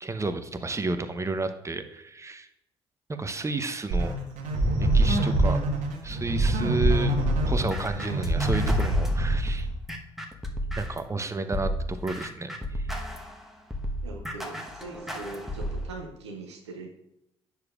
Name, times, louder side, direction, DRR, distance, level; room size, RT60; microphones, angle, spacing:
voice 1, 0.0-2.5 3.1-4.1 4.8-5.6 6.0-7.1 7.4-9.7 10.8-12.9, right 3 dB, 20° right, 9 dB, 0.9 m, -31 dB
sound 1, 3.9-9.7, right 1 dB, 60° right, 1.4 m, -24 dB
sound 2, 7.2-11.1 11.5-15.9, equal, ahead, 1.2 m, -33 dB
voice 2, 14.0-16.9, right 3 dB, 85° right, 1 dB, 0.8 m, -41 dB
9.4 x 6.7 x 2.5 m, 0.81 s
hypercardioid pair, 50°, 14 cm